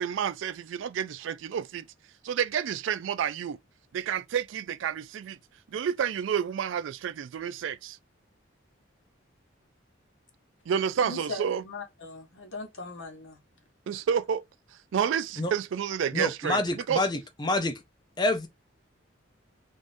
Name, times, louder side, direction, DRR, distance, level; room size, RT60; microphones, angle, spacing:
voice 1, 0.0-1.8 2.2-3.6 3.9-5.4 5.7-8.0 10.7-11.6 13.9-14.4 14.9-17.1, right 8 dB, 70° right, 0.3 m, -29 dB
voice 2, 11.0-13.4, left 2 dB, 80° left, 1.0 m, -39 dB
voice 3, 16.1-17.7 18.2-18.5, left 2 dB, 20° left, 0.5 m, -27 dB
3.7 x 2.5 x 2.5 m
head